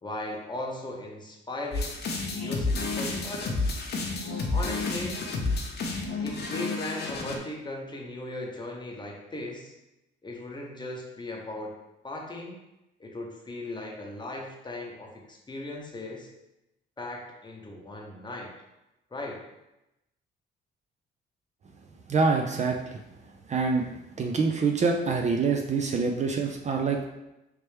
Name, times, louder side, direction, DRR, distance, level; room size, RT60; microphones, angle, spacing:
voice 1, 0.0-2.0 2.3-3.7 4.3-5.2 6.2-9.7 10.2-11.7 12.0-12.6 13.0-16.3 17.0-18.5 19.1-19.4, left 1 dB, 20° left, 0 dB, 0.8 m, -38 dB
sound 1, 1.7-7.3, left 3 dB, 55° left, 0.7 m, -30 dB
voice 2, 22.1-23.0 23.5-23.8 24.2-27.1, right 4 dB, 35° right, 3 dB, 0.4 m, -25 dB
3.3 x 3.0 x 3.2 m, 0.93 s
cardioid pair, 90°, 20 cm